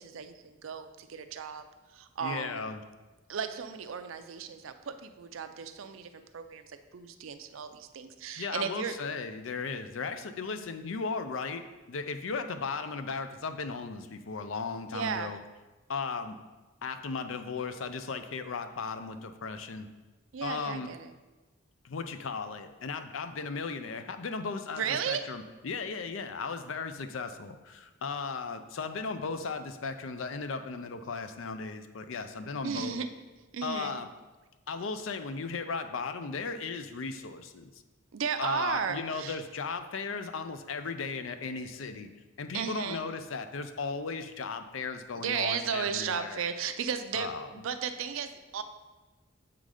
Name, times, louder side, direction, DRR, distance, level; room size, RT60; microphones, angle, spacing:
voice 1, 0.0-1.6 1.9-2.7 3.3-9.0 14.9-15.4 20.3-21.1 24.7-25.3 32.6-33.1 33.5-34.0 38.1-39.4 42.5-43.0 45.2-48.6, right 7 dB, 80° right, 9 dB, 0.5 m, -35 dB
voice 2, 2.2-2.8 8.4-15.4 15.9-16.4 16.8-19.9 20.4-20.9 21.8-33.0 33.6-34.1 34.7-37.7 38.4-42.1 42.4-46.4 47.1-47.5, left 4 dB, 75° left, 9 dB, 0.5 m, -36 dB
7.4 x 3.9 x 4.9 m, 1.2 s
head